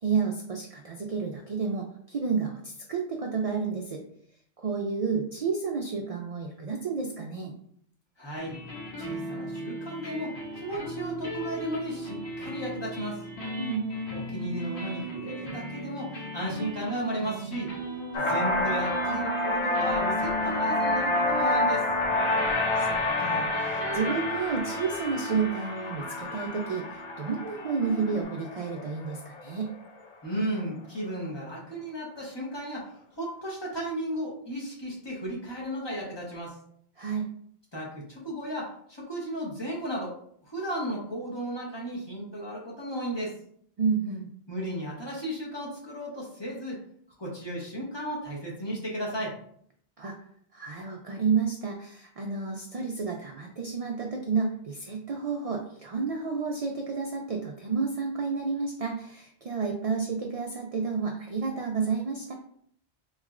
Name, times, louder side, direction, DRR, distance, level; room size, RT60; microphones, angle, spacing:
voice 1, 0.0-4.0 4.6-7.5 13.6-13.9 22.8-26.9 27.2-29.7 37.0-37.3 43.8-44.3 50.0-50.2 50.5-62.3, right 5 dB, 55° right, 1 dB, 0.4 m, -30 dB
voice 2, 8.2-8.6 9.0-13.2 14.1-17.7 18.2-21.9 30.2-36.6 37.7-40.2 40.4-43.3 44.5-46.8 47.2-49.3, right 1 dB, 25° left, -5 dB, 1.0 m, -34 dB
sound 1, 8.4-28.2, right 1 dB, 90° left, 1.4 m, -38 dB
sound 2, 18.1-29.7, left 2 dB, 45° left, 0.4 m, -28 dB
4.2 x 3.0 x 2.4 m, 0.65 s
omnidirectional pair, 1.1 m